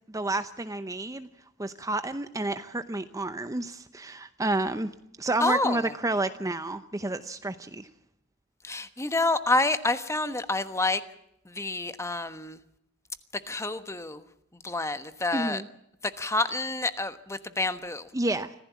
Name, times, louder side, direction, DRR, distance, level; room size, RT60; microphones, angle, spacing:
voice 1, 0.1-1.3 1.6-4.9 5.2-7.9 15.3-15.7 18.1-18.5, right 2 dB, 15° right, 11 dB, 0.7 m, -30 dB
voice 2, 5.4-5.9 8.6-11.0 11.5-12.6 13.5-14.2 14.6-15.6 16.2-18.1, left 2 dB, 15° left, 11 dB, 1.2 m, -28 dB
25.0 x 15.5 x 8.4 m, 0.78 s
head